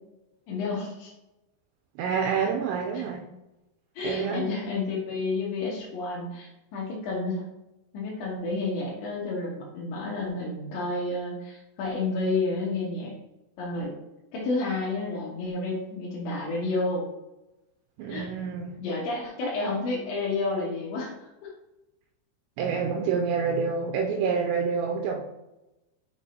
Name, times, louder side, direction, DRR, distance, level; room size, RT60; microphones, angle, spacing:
voice 1, 0.5-1.1 2.9-3.0 4.0-7.4 7.9-13.1 13.6-13.9 14.3-17.1 18.1-18.3 18.8-21.1 21.4-21.5, left 3 dB, 85° left, -4 dB, 3.5 m, -30 dB
voice 2, 2.0-3.3 4.0-4.5 18.0-18.8 22.6-25.2, right 6 dB, 80° right, 1 dB, 2.8 m, -27 dB
6.9 x 6.6 x 2.7 m, 0.97 s
omnidirectional pair, 5.2 m